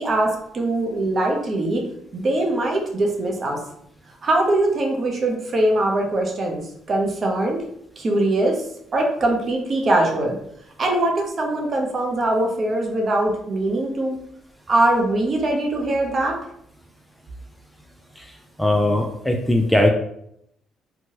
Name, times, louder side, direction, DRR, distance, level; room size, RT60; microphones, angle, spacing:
voice 1, 0.0-1.8 2.1-3.6 4.2-7.6 8.0-8.6 8.9-10.4 10.8-14.2 14.7-16.4, right 1 dB, 45° right, 1 dB, 0.7 m, -22 dB
voice 2, 18.6-19.9, left 1 dB, 5° left, 2 dB, 0.4 m, -19 dB
3.0 x 2.2 x 2.9 m, 0.73 s
hypercardioid pair, 60°, 0 cm